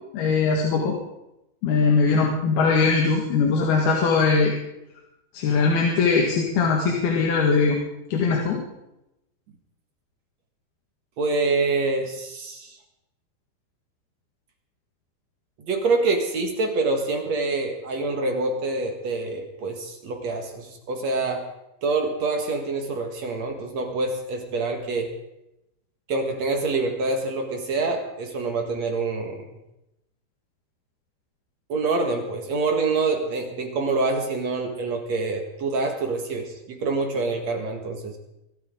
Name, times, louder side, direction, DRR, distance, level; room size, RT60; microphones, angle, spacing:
voice 1, 0.1-1.0 1.6-4.5 5.3-7.8 8.1-8.6, left 4 dB, 75° left, -1 dB, 3.7 m, -21 dB
voice 2, 11.2-12.8 15.7-21.5 21.8-25.1 26.1-29.5 31.7-38.2, right 3 dB, 55° right, 3 dB, 2.5 m, -26 dB
24.5 x 13.0 x 3.8 m, 0.89 s
omnidirectional pair, 4.5 m